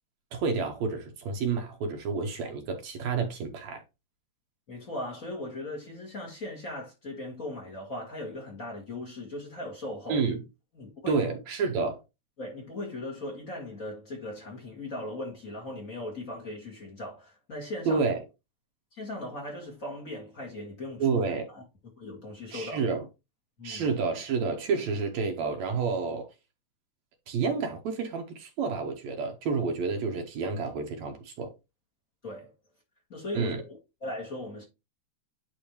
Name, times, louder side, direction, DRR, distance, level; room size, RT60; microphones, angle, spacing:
voice 1, 0.3-3.8 10.1-10.4 11.1-12.0 17.9-18.2 21.0-21.5 22.5-23.1 23.6-26.3 27.3-31.5 33.3-33.6, right 4 dB, 70° right, 2.2 m, -29 dB
voice 2, 4.7-10.2 10.7-11.3 12.4-18.1 18.9-21.2 21.5-21.6 22.0-22.9 23.6-23.9 32.2-32.5 33.1-34.6, left 1 dB, 30° left, 2.1 m, -38 dB
10.0 x 3.5 x 3.1 m
omnidirectional pair, 3.4 m